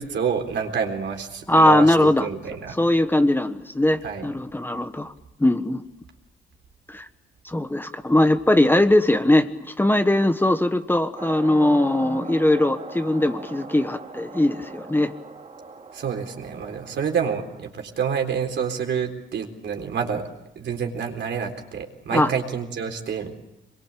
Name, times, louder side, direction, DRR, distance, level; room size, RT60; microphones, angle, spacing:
voice 1, 0.0-2.8 4.0-4.3 15.9-20.3 20.6-23.4, right 6 dB, 65° right, 3 dB, 3.9 m, -28 dB
voice 2, 1.5-2.3 2.8-5.1 5.4-5.8 6.9-7.1 7.4-15.1 22.1-22.3, left 1 dB, 10° left, 8 dB, 1.3 m, -20 dB
sound 1, 11.1-17.7, right 4 dB, 35° right, 2.4 m, -40 dB
24.5 x 22.0 x 8.5 m, 0.90 s
cardioid pair, 90°, 20 cm